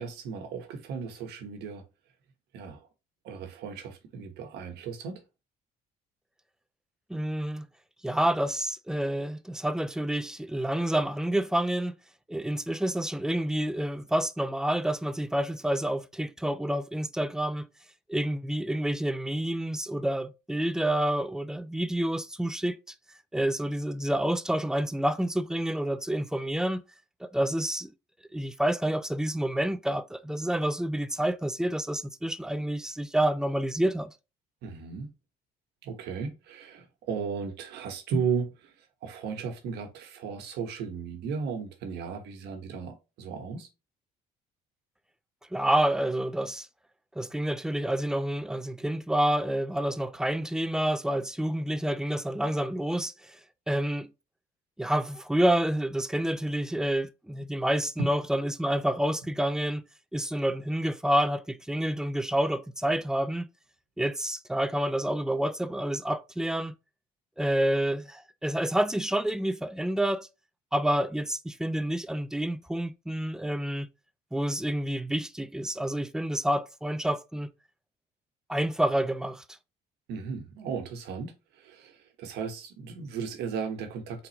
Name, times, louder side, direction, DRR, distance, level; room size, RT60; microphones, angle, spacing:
voice 1, 0.0-1.8 2.5-2.9 3.2-5.2 34.6-35.1 35.8-38.7 39.0-43.7 58.0-58.1 80.1-84.3, right 5 dB, 80° right, 1.1 m, -35 dB
voice 2, 7.1-7.7 8.0-11.9 12.3-17.7 18.1-22.8 23.3-26.8 27.2-27.9 28.3-34.1 45.5-46.7 47.2-53.4 53.7-54.1 54.8-59.8 60.1-63.5 64.0-66.7 67.4-70.3 70.7-73.9 74.3-77.5 78.5-79.4, right 1 dB, 5° right, 0.4 m, -28 dB
4.2 x 3.9 x 2.9 m
cardioid pair, 110°, 17 cm